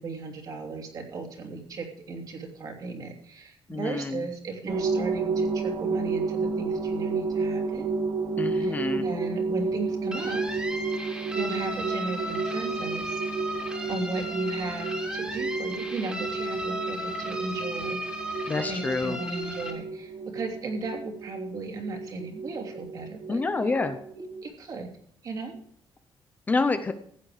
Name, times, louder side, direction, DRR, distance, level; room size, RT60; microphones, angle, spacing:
voice 1, 0.0-7.9 8.5-10.4 11.3-13.2 13.9-23.4 24.4-24.9 25.2-25.5, right 3 dB, 45° right, 2 dB, 2.9 m, -36 dB
voice 2, 3.7-4.3 8.4-9.0 18.5-19.2 23.3-24.0 26.5-26.9, left 3 dB, 20° left, 9 dB, 0.7 m, -27 dB
sound 1, 4.7-24.4, right 4 dB, 65° right, 1.7 m, -31 dB
sound 2, 10.1-19.7, equal, 10° right, 2.5 m, -35 dB
15.5 x 9.0 x 5.0 m, 0.64 s
cardioid pair, 175°, 9 cm